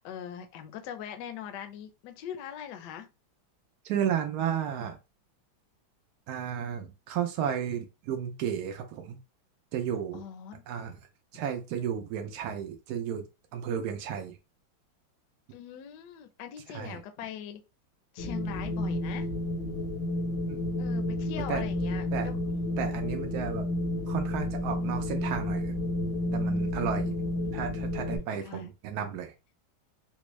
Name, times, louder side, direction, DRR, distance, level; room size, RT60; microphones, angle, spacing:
voice 1, 0.0-3.1 10.1-10.6 15.5-17.6 18.1-19.3 20.8-22.3 27.0-27.3 28.0-28.7, left 9 dB, 70° left, 1.1 m, -42 dB
voice 2, 3.8-5.0 6.3-9.2 9.7-10.2 10.7-11.0 11.3-13.3 13.5-14.4 16.7-17.0 20.5-20.6 21.5-21.6 22.1-22.3 22.8-23.7 24.1-25.7 26.3-27.1 27.5-29.3, right 8 dB, 85° right, 0.8 m, -33 dB
Wind, 18.2-28.2, left 1 dB, 50° left, 0.6 m, -31 dB
4.3 x 2.1 x 3.0 m
omnidirectional pair, 2.2 m